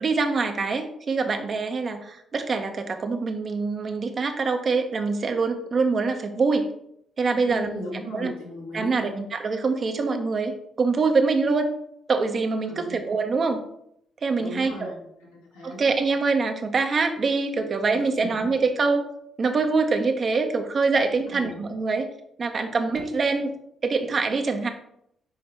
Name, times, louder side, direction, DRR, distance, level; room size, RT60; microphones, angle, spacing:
voice 1, 0.0-6.7 7.2-7.7 8.1-8.3 8.7-11.7 12.1-13.6 14.2-14.9 15.6-19.1 19.4-22.0 22.4-23.5 23.8-24.7, right 4 dB, 45° right, 6 dB, 0.8 m, -24 dB
voice 2, 7.5-9.1 12.7-13.0 14.4-15.0 15.3-15.8 17.9-18.5 21.3-21.6, left 1 dB, 85° left, -6 dB, 1.8 m, -37 dB
5.6 x 5.1 x 3.3 m, 0.73 s
figure-of-eight pair, 40°, 0 cm